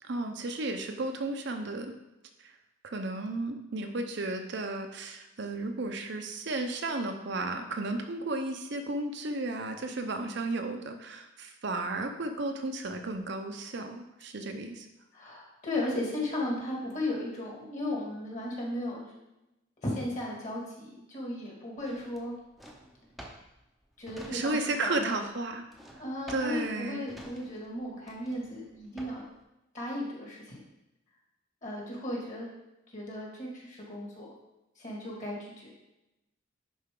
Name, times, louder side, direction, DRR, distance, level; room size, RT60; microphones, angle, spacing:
voice 1, 0.0-1.9 2.4-2.6 2.8-14.9 24.3-25.6 26.3-27.0, right 2 dB, 60° right, 5 dB, 0.7 m, -33 dB
voice 2, 15.1-19.1 19.8-22.3 24.0-25.2 26.0-29.2 29.7-30.6 31.6-32.5 32.9-34.3 34.8-35.7, left 1 dB, 40° left, -3 dB, 2.1 m, -35 dB
Drawer open or close, 21.8-24.9 25.1-29.4, equal, ahead, 0.7 m, -50 dB
10.5 x 4.3 x 3.7 m, 0.94 s
head